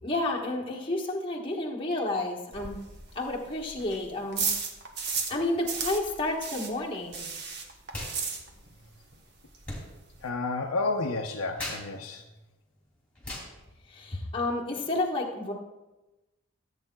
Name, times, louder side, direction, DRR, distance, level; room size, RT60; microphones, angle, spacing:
voice 1, 0.0-2.8 3.1-4.5 5.3-7.2 13.9-15.5, left 2 dB, 25° left, -3 dB, 1.2 m, -30 dB
sound 1, 2.5-5.4 5.6-8.9 9.1-9.2 9.5-9.6 9.8-10.3, right 5 dB, 50° right, 1.0 m, -34 dB
sound 2, 7.9-8.2 8.4-14.6, left 1 dB, 5° left, 2.7 m, -43 dB
voice 2, 10.2-12.2, left 3 dB, 90° left, 1 dB, 0.6 m, -31 dB
15.0 x 8.3 x 2.3 m, 1.1 s
head